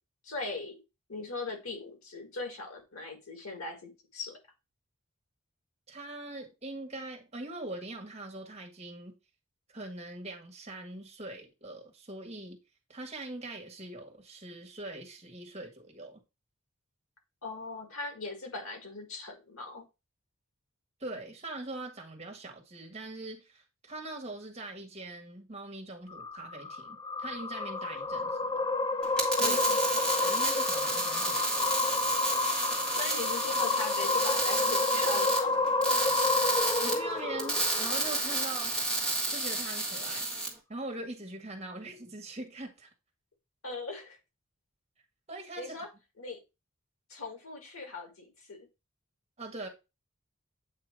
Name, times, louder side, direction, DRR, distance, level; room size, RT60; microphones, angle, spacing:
voice 1, 0.2-0.8 1.1-4.4 17.4-19.9 29.4-29.8 32.9-35.6 43.6-44.2 45.6-45.9 46.2-46.4 47.1-48.7, left 3 dB, 90° left, 2.1 m, -39 dB
voice 2, 5.9-9.1 9.7-12.6 12.9-16.2 21.0-28.5 29.3-29.6 30.2-31.9 36.8-38.8 39.3-40.3 40.7-42.9 45.3-45.8 49.4-49.7, right 2 dB, 30° right, 1.6 m, -42 dB
sound 1, 26.1-38.6, left 3 dB, 20° left, 0.3 m, -30 dB
sound 2, 29.0-40.5, right 2 dB, 5° left, 1.6 m, -31 dB
8.4 x 2.9 x 4.6 m
head